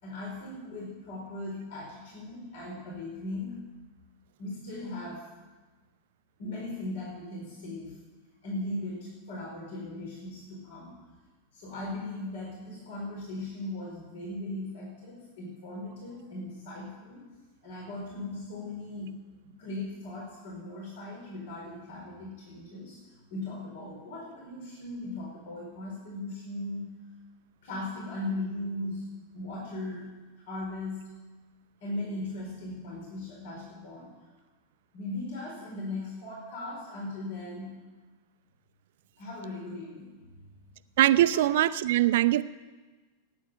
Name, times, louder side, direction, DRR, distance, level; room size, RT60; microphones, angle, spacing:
voice 1, 0.0-3.6 4.4-5.2 6.4-8.0 8.4-11.0 11.5-17.2 17.6-19.1 19.4-23.0 23.3-26.9 27.6-29.1 29.3-30.1 30.5-31.1 31.8-34.1 34.9-37.7 39.2-40.5, left 2 dB, 55° left, -2 dB, 4.6 m, -38 dB
voice 2, 41.0-42.4, right 14 dB, 55° right, 15 dB, 0.6 m, -22 dB
15.5 x 9.5 x 9.1 m, 1.3 s
figure-of-eight pair, 90°, 0 cm